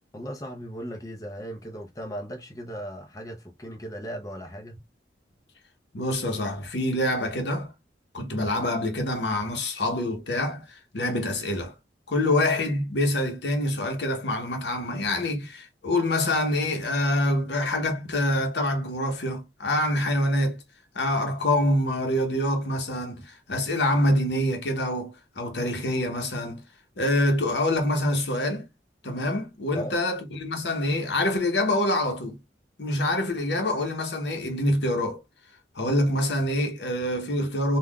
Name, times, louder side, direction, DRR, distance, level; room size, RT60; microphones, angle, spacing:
voice 1, 0.1-4.8 29.7-30.0, equal, 20° left, 0.6 m, -37 dB
voice 2, 5.9-7.7 8.1-11.7 12.1-20.6 20.9-26.6 27.0-28.7 29.0-32.4 32.8-35.2 35.7-37.8, left 1 dB, 80° left, 0.9 m, -26 dB
3.6 x 2.3 x 2.3 m
head